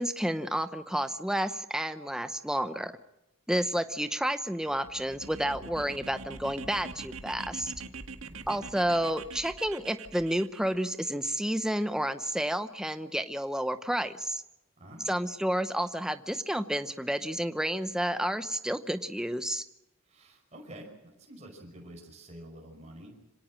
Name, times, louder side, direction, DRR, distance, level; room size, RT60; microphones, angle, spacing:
voice 1, 0.0-2.9 3.5-7.7 8.5-14.4 15.1-19.6, right 1 dB, 5° right, 10 dB, 0.8 m, -30 dB
sound 1, 4.7-10.7, right 4 dB, 75° right, 1.7 m, -44 dB
voice 2, 8.3-8.6 14.8-15.1 20.1-23.3, right 1 dB, 30° right, -1 dB, 5.4 m, -48 dB
26.0 x 18.0 x 7.5 m, 0.94 s
head